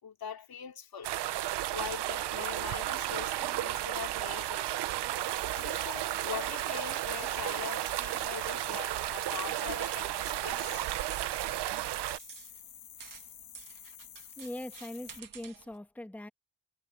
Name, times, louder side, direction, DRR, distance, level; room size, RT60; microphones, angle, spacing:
voice 1, 0.0-1.1 1.7-4.7 5.5-10.9, left 7 dB, 60° left, 2.9 m, -42 dB
sound 1, 1.0-12.2, right 14 dB, 90° right, 0.7 m, -33 dB
sound 2, 5.2-15.2, left 11 dB, 90° left, 3.6 m, -51 dB
sound 3, 10.6-15.8, right 8 dB, 55° right, 1.8 m, -52 dB
voice 2, 14.4-16.3, left 1 dB, 5° left, 1.3 m, -41 dB
cardioid pair, 100°, 39 cm